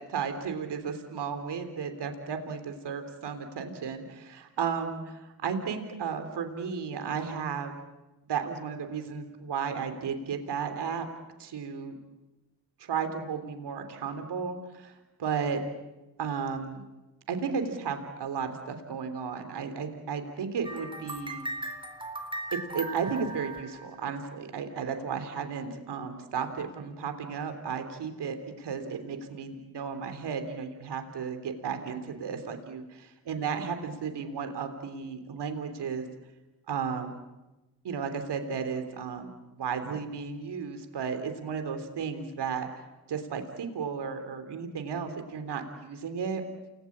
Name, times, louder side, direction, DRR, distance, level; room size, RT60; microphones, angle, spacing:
voice 1, 0.1-7.7 8.3-11.1 11.4-12.0 12.8-15.6 16.2-16.8 17.3-21.5 22.5-36.1 36.7-37.2 37.8-42.7 43.1-46.4, right 6 dB, 80° right, 7 dB, 3.5 m, -34 dB
sound 1, 20.6-24.4, right 1 dB, 10° right, 4.0 m, -38 dB
29.0 x 20.5 x 8.8 m, 1.1 s
supercardioid pair, 45°, 40 cm